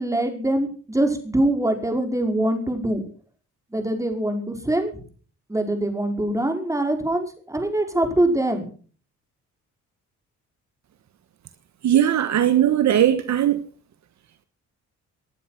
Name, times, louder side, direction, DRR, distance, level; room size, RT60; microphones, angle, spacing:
voice 1, 0.0-3.0 3.7-4.9 5.5-8.7, right 1 dB, 10° right, 5.3 m, -23 dB
voice 2, 11.8-13.6, right 11 dB, 65° right, 1.4 m, -19 dB
20.0 x 11.5 x 6.0 m
cardioid pair, 90°, 30 cm